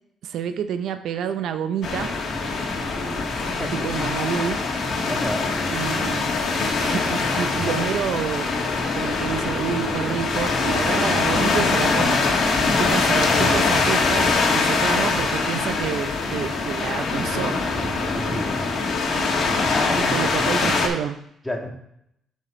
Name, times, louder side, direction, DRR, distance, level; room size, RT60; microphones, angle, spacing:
voice 1, 0.2-2.1 3.7-4.6 5.7-6.4 6.8-8.5 8.9-12.2 12.8-17.6 20.0-21.2, right 8 dB, 75° right, 9 dB, 0.6 m, -28 dB
sound 1, 1.8-20.9, left 3 dB, 65° left, 1.8 m, -23 dB
voice 2, 5.1-5.5 18.1-18.6 19.7-20.7 21.4-21.7, left 1 dB, 5° left, -1 dB, 2.2 m, -30 dB
6.7 x 6.3 x 4.3 m, 0.73 s
cardioid pair, 90°, 0 cm